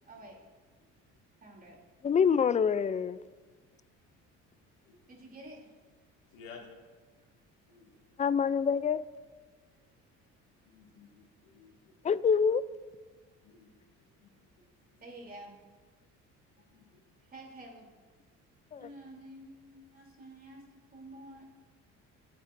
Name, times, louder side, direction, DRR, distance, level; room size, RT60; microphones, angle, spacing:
voice 1, 0.0-0.4 1.4-1.8 5.1-5.7 7.7-7.8 9.7-9.9 15.0-15.5 16.6-16.7 17.2-17.9 18.7-21.5, right 1 dB, 30° right, 3.3 m, -50 dB
voice 2, 2.0-3.2 8.2-9.0 12.0-12.6 18.7-18.8, left 6 dB, 25° left, 0.4 m, -26 dB
voice 3, 6.3-6.7 7.7-7.9 10.6-11.9 13.4-14.6 14.9-15.0 16.6-17.0, left 5 dB, 90° left, 2.4 m, -55 dB
26.5 x 8.9 x 2.6 m
supercardioid pair, 95°, 30 cm